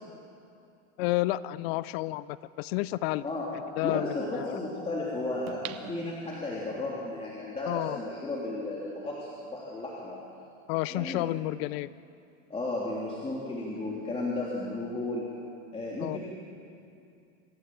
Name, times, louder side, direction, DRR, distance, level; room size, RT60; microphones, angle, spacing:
voice 1, 1.0-3.2 3.8-4.6 7.7-8.0 10.7-11.9 16.0-16.2, left 17 dB, 50° left, 18 dB, 0.5 m, -30 dB
sound 1, 1.9-2.0 5.5-6.8 7.3-7.4, right 12 dB, 40° right, 1.2 m, -43 dB
voice 2, 3.8-10.2 10.9-11.2 12.5-15.3 15.7-16.2, left 2 dB, 15° left, -5 dB, 3.4 m, -34 dB
26.0 x 15.5 x 7.7 m, 2.5 s
supercardioid pair, 125°, 41 cm